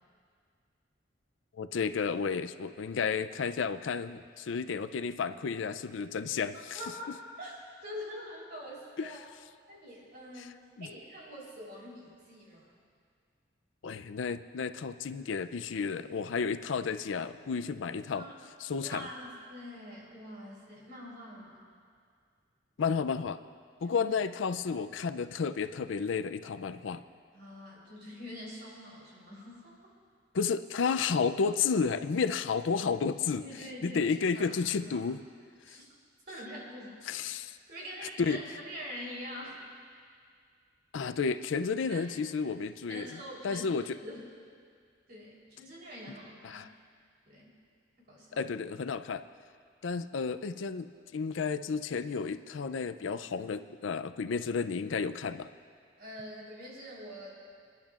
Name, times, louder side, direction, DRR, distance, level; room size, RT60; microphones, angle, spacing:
voice 1, 1.6-6.8 9.0-9.1 10.8-10.9 13.8-18.3 18.6-19.1 22.8-23.4 23.8-27.0 30.3-33.4 33.8-35.2 35.7-35.8 37.1-37.6 38.2-38.4 40.9-43.1 43.4-44.0 46.4-46.7 48.3-49.2 49.8-50.9 51.1-55.5, left 5 dB, 85° left, 11 dB, 0.5 m, -32 dB
voice 2, 6.7-7.5 7.8-9.2 9.7-12.8 18.1-18.3 18.8-21.7 23.8-24.0 27.3-29.9 33.4-34.5 34.8-35.0 35.7-35.9 36.3-37.0 37.7-39.6 41.9-42.1 42.9-43.7 44.0-44.3 45.1-46.7 47.3-47.6 48.1-48.4 56.0-57.3, equal, 55° right, -4 dB, 3.7 m, -45 dB
28.0 x 10.5 x 2.5 m, 2.1 s
head